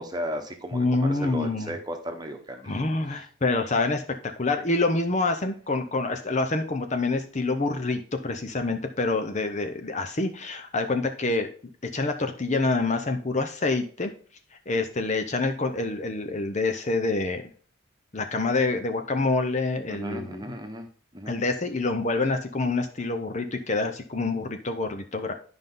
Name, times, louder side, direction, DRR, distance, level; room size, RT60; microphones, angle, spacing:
voice 1, 0.0-2.7 3.1-3.2 19.9-20.9 21.1-21.3, equal, 20° right, 4 dB, 1.1 m, -35 dB
voice 2, 0.7-1.7 2.7-11.5 11.9-14.1 14.7-17.4 18.1-20.4 21.3-25.3, left 3 dB, 35° left, 7 dB, 0.7 m, -27 dB
11.5 x 5.3 x 3.9 m, 0.43 s
head